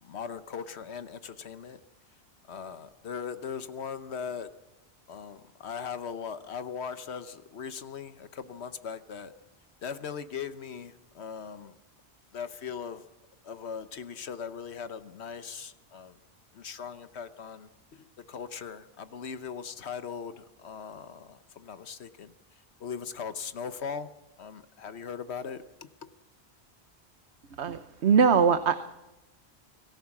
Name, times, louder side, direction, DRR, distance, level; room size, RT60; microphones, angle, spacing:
voice 1, 0.0-1.8 2.5-4.5 5.1-9.3 9.8-11.8 12.3-13.0 13.4-16.2 16.5-22.3 22.8-24.1 24.4-25.9, left 6 dB, 80° left, 11 dB, 1.2 m, -39 dB
voice 2, 27.6-28.7, right 6 dB, 85° right, 9 dB, 1.2 m, -22 dB
25.5 x 18.5 x 6.0 m, 1.0 s
omnidirectional pair, 1.1 m